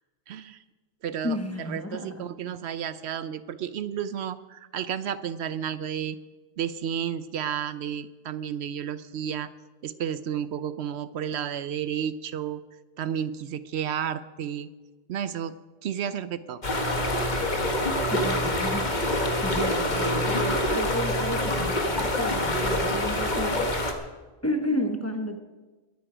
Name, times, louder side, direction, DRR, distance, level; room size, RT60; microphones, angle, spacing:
voice 1, 0.3-0.6 1.0-6.2 6.6-9.5 9.8-12.6 13.0-14.7 15.1-15.5 15.8-16.9, right 9 dB, 75° right, 14 dB, 0.9 m, -32 dB
voice 2, 1.2-2.5 18.1-19.0 19.4-23.8 24.4-25.4, left 1 dB, 15° left, 5 dB, 1.0 m, -32 dB
sound 1, 16.6-23.9, left 1 dB, 45° left, 1.5 m, -26 dB
22.0 x 9.4 x 5.0 m, 1.2 s
omnidirectional pair, 1.1 m